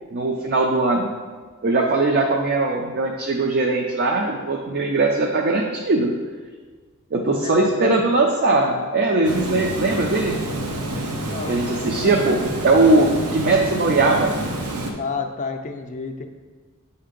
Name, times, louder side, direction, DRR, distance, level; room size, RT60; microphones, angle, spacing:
voice 1, 0.1-1.1 1.6-6.1 7.1-10.4 11.5-13.1 13.3-14.3, right 2 dB, 45° right, 1 dB, 0.5 m, -20 dB
voice 2, 7.3-8.0 10.9-12.1 12.8-13.0 15.0-16.3, left 4 dB, 35° left, 5 dB, 0.5 m, -31 dB
Water, 9.2-14.9, right 1 dB, 85° right, 0.9 m, -28 dB
7.5 x 2.8 x 5.1 m, 1.5 s
head